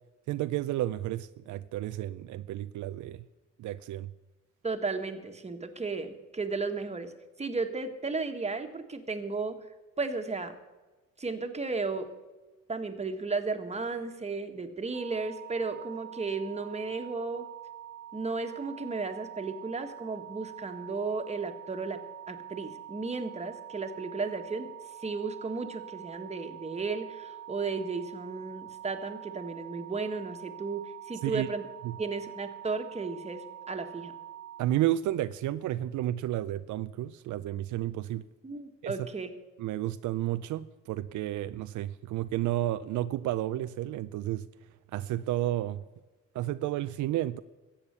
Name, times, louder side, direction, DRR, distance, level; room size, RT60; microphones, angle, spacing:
voice 1, 0.3-3.2 3.6-4.1 31.2-31.5 31.8-32.0 34.6-38.2 38.8-38.9 39.6-44.4 44.9-45.8 46.3-47.4, right 14 dB, 75° right, 12 dB, 0.5 m, -31 dB
voice 2, 4.6-7.1 7.4-9.6 10.0-10.5 11.2-12.1 12.7-17.5 18.1-22.0 22.3-24.7 25.0-31.6 32.0-34.1 38.4-39.3, right 4 dB, 20° right, 6 dB, 1.5 m, -34 dB
sound 1, 14.9-34.6, right 11 dB, 60° right, 1.0 m, -45 dB
14.0 x 8.6 x 6.8 m, 1.2 s
cardioid pair, 90°, 30 cm